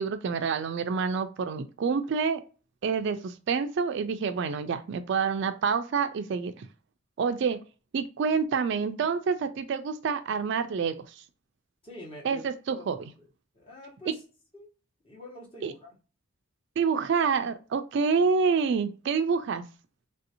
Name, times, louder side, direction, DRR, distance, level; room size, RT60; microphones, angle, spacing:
voice 1, 0.0-2.4 2.8-6.7 7.2-7.6 7.9-11.0 12.2-13.1 14.1-14.2 15.6-15.7 16.8-19.6, right 5 dB, 55° right, 9 dB, 0.3 m, -27 dB
voice 2, 11.8-12.9 13.5-14.2 14.5-14.7 15.0-15.9, left 1 dB, 25° left, -2 dB, 1.0 m, -45 dB
3.3 x 2.6 x 2.7 m, 0.34 s
head